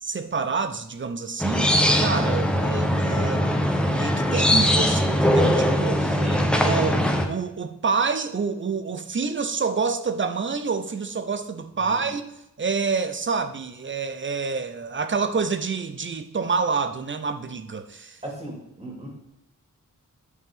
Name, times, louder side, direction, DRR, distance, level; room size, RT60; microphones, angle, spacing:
voice 1, 0.0-3.5 3.9-6.2 6.6-12.2 12.6-18.2, right 5 dB, 40° right, 10 dB, 0.7 m, -27 dB
sound 1, 1.4-7.3, equal, 5° left, 0.8 m, -21 dB
voice 2, 6.1-6.5 11.8-12.0 18.2-19.1, right 1 dB, 20° right, -2 dB, 2.2 m, -36 dB
9.6 x 5.5 x 3.6 m, 0.85 s
wide cardioid pair, 100°, 32 cm